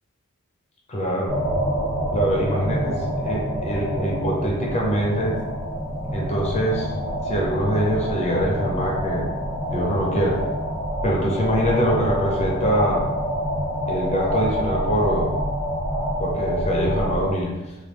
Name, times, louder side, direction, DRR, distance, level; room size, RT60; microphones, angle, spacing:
voice 1, 0.9-1.4 2.1-5.4 6.1-6.9 7.2-9.3 9.7-10.4 11.0-13.0 13.9-15.4 16.2-17.7, equal, 30° left, -2 dB, 0.5 m, -24 dB
sound 1, 1.3-17.3, equal, 20° right, 0.8 m, -26 dB
3.1 x 2.2 x 3.2 m, 1.1 s
head